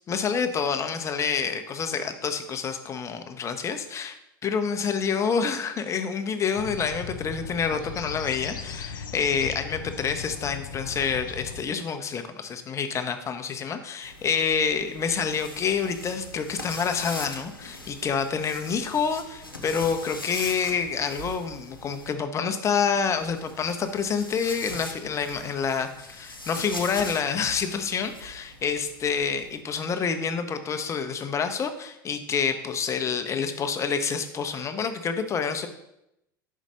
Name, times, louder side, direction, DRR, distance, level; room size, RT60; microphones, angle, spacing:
voice 1, 0.1-4.2 4.4-35.7, left 6 dB, 25° left, 7 dB, 0.8 m, -28 dB
sound 1, 6.6-11.6, left 6 dB, 70° left, 0.5 m, -38 dB
sound 2, 14.0-22.1 23.1-29.6, left 1 dB, 90° left, 0.8 m, -41 dB
5.5 x 5.0 x 5.2 m, 0.84 s
figure-of-eight pair, 75°, 11 cm